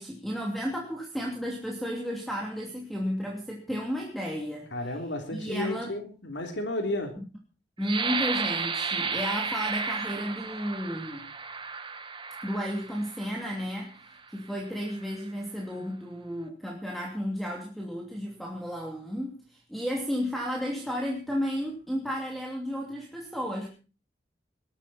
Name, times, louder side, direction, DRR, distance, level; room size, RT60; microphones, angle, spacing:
voice 1, 0.0-4.7 5.3-5.9 7.2-7.3 7.8-11.2 12.4-14.0 14.3-23.7, equal, ahead, 0 dB, 2.8 m, -33 dB
voice 2, 4.7-7.1, left 1 dB, 85° left, 4 dB, 3.4 m, -32 dB
sound 1, 7.8-13.5 14.1-14.3 14.8-15.2, right 5 dB, 30° right, 1.5 m, -33 dB
20.5 x 13.0 x 4.3 m, 0.35 s
head